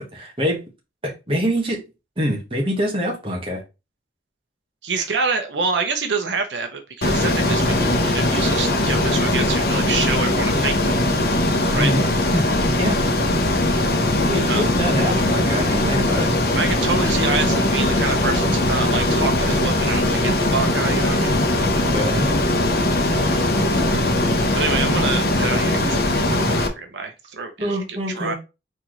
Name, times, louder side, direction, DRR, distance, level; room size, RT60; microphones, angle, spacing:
voice 1, 0.1-0.6 1.0-1.8 2.2-3.6 4.9-5.0 11.7-12.4 12.8-13.0 14.3-16.3 21.9-22.3 24.6-24.7 27.6-28.3, equal, 30° right, 0 dB, 1.4 m, -25 dB
voice 2, 4.8-11.0 11.7-11.9 14.5-14.6 16.5-21.4 23.9-24.2 24.5-28.3, right 4 dB, 90° right, 5 dB, 0.9 m, -27 dB
Ocean, 7.0-26.7, left 1 dB, 55° left, 0.9 m, -20 dB
4.4 x 3.9 x 3.1 m, 0.27 s
head